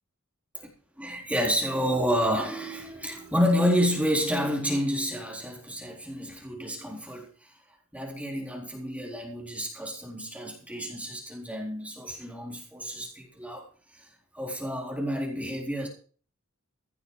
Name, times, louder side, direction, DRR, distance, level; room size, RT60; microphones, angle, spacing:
voice 1, 1.0-7.6 7.9-15.9, equal, 5° right, -1 dB, 4.0 m, -29 dB
16.0 x 9.8 x 4.9 m, 0.42 s
head